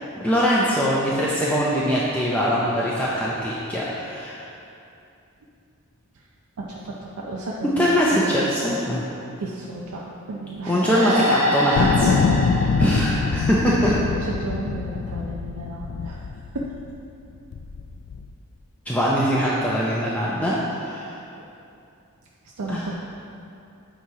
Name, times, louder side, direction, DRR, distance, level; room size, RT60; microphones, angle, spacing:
voice 1, 0.2-4.5 7.8-9.0 10.7-13.9 18.9-21.2 22.7-22.8, equal, 5° left, -7 dB, 0.5 m, -22 dB
voice 2, 6.6-7.8 8.1-8.5 9.4-10.8 14.2-16.7 22.4-22.9, right 2 dB, 90° right, -3 dB, 0.6 m, -33 dB
sound 1, 10.8-14.3, left 1 dB, 35° right, 0.9 m, -26 dB
sound 2, 11.8-17.0 17.5-18.3, left 5 dB, 60° left, 0.3 m, -24 dB
8.3 x 3.0 x 4.7 m, 2.6 s
head